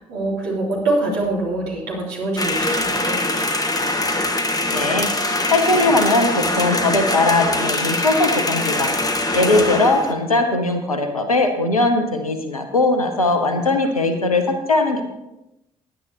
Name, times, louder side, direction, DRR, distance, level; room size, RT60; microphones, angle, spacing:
voice 1, 0.0-3.4, right 2 dB, 65° right, -4 dB, 3.2 m, -24 dB
sound 1, 2.4-10.1, left 2 dB, 20° left, 1.5 m, -22 dB
voice 2, 4.7-5.1 5.5-9.0 9.3-15.0, left 2 dB, 85° left, 7 dB, 0.8 m, -19 dB
16.5 x 10.0 x 2.9 m, 0.92 s
figure-of-eight pair, 45°, 18 cm